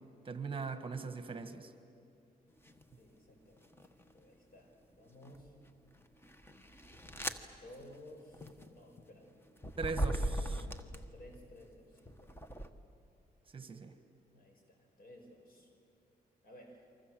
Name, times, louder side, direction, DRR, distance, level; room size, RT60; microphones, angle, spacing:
voice 1, 0.2-1.7 9.8-10.6 13.5-13.9, right 4 dB, 35° right, 8 dB, 1.6 m, -40 dB
sound 1, 2.6-2.9 3.6-4.3 5.0-11.4 12.0-12.7, right 1 dB, 15° left, 1.3 m, -40 dB
voice 2, 3.0-3.7 4.1-5.5 7.5-9.5 10.0-12.4 14.3-15.7 16.4-16.9, left 1 dB, 70° left, 3 dB, 5.8 m, -56 dB
28.5 x 25.0 x 7.8 m, 2.6 s
cardioid pair, 115°, 16 cm